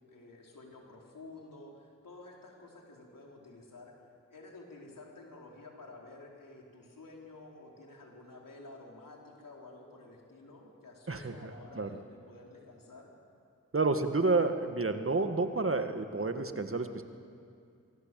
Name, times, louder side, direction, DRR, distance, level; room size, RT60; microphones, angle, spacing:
voice 1, 0.1-3.9 4.3-13.1, left 2 dB, 80° left, -1 dB, 4.4 m, -51 dB
voice 2, 11.1-11.5 11.8-12.0 13.7-17.0, right 3 dB, 40° right, 7 dB, 1.9 m, -30 dB
25.0 x 23.0 x 7.8 m, 2.4 s
cardioid pair, 45°, 32 cm